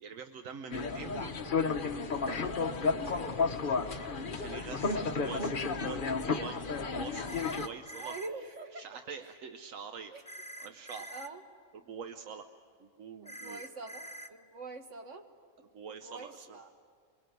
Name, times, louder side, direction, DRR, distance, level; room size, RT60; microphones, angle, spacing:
voice 1, 0.0-2.6 4.3-8.1 8.7-10.1 10.6-11.1 11.9-12.5 12.8-13.6 15.7-16.6, right 6 dB, 85° right, 7 dB, 1.3 m, -45 dB
sound 1, 0.7-7.7, left 4 dB, 45° left, 1.1 m, -32 dB
sound 2, 7.3-8.3 10.3-11.3 13.3-14.3, right 1 dB, 5° left, 0.7 m, -45 dB
voice 2, 7.9-8.9 10.1-10.2 11.1-11.4 13.2-15.3 15.9-16.7, right 3 dB, 70° right, 5 dB, 2.0 m, -44 dB
25.0 x 23.5 x 9.3 m, 2.1 s
omnidirectional pair, 1.3 m